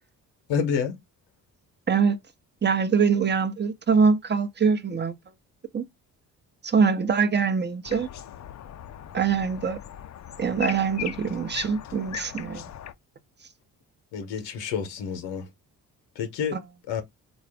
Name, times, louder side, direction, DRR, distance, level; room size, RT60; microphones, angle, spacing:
voice 1, 0.5-0.9 14.1-15.5 16.2-16.6 16.9-17.0, left 7 dB, 80° left, 0.8 m, -28 dB
voice 2, 2.6-5.1 5.7-5.8 6.6-8.1 9.1-9.8 10.4-12.6 16.5-16.6, right 5 dB, 25° right, 0.7 m, -23 dB
sound 1, 7.8-12.9, left 10 dB, 40° left, 0.5 m, -39 dB
4.0 x 2.3 x 3.3 m
hypercardioid pair, 50°, 43 cm